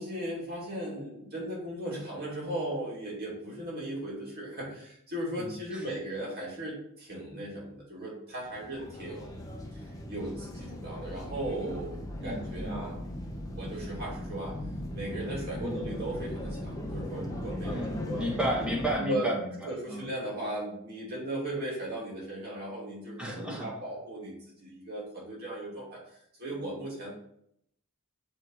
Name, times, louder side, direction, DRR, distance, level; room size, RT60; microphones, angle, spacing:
voice 1, 0.0-9.4 9.7-13.0 13.5-14.6 14.9-18.2 19.0-19.3 19.7-26.0 26.4-27.1, right 1 dB, 45° right, -4 dB, 2.8 m, -37 dB
voice 2, 5.4-5.8 12.2-12.8 15.6-15.8 17.6-20.0 23.2-23.7, right 1 dB, 5° right, -3 dB, 1.4 m, -33 dB
sound 1, 8.4-18.9, left 1 dB, 15° left, 0.8 m, -38 dB
7.1 x 3.4 x 4.7 m, 0.71 s
head